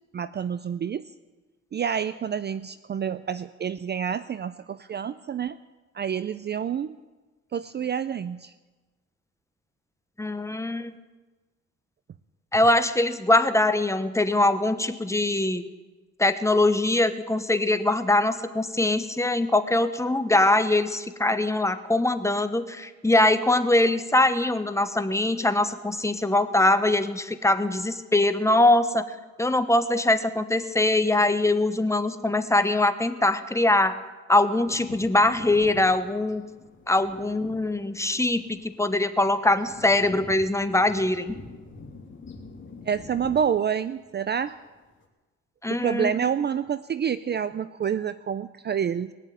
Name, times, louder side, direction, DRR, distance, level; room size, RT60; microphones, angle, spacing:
voice 1, 0.1-1.1 1.7-5.6 5.9-7.0 7.5-8.5 42.9-44.6 45.7-49.1, right 8 dB, 35° right, 14 dB, 0.5 m, -28 dB
voice 2, 10.2-10.9 12.5-15.6 16.2-29.0 29.4-33.9 34.3-36.4 36.9-41.4 45.6-46.3, left 2 dB, 10° left, 10 dB, 1.1 m, -22 dB
sound 1, 34.6-44.6 45.0-45.1, left 4 dB, 40° left, 2.9 m, -46 dB
20.5 x 7.3 x 9.3 m, 1.2 s
cardioid pair, 90°, 30 cm